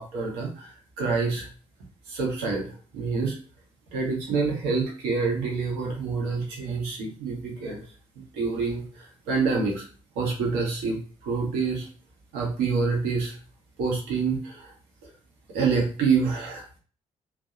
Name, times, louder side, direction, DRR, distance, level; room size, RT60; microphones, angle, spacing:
voice 1, 0.0-1.5 2.1-3.4 3.9-7.8 8.3-9.9 10.2-11.9 12.3-13.3 13.8-14.7 15.5-16.6, right 4 dB, 65° right, -1 dB, 0.9 m, -27 dB
2.7 x 2.2 x 2.3 m, 0.38 s
figure-of-eight pair, 45°, 18 cm